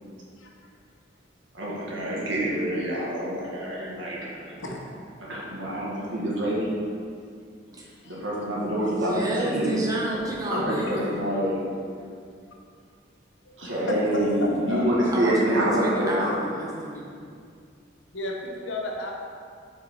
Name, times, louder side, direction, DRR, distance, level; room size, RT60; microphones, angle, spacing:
voice 1, 1.5-4.6 5.2-6.7 8.0-9.7 10.5-11.6 13.6-16.4, right 1 dB, 85° right, -5 dB, 1.9 m, -26 dB
voice 2, 8.8-11.3 15.1-17.0, right 1 dB, 20° right, -4 dB, 1.1 m, -30 dB
voice 3, 13.5-15.2 18.1-19.1, left 1 dB, 90° left, 0 dB, 1.1 m, -33 dB
7.0 x 4.6 x 4.6 m, 2.3 s
head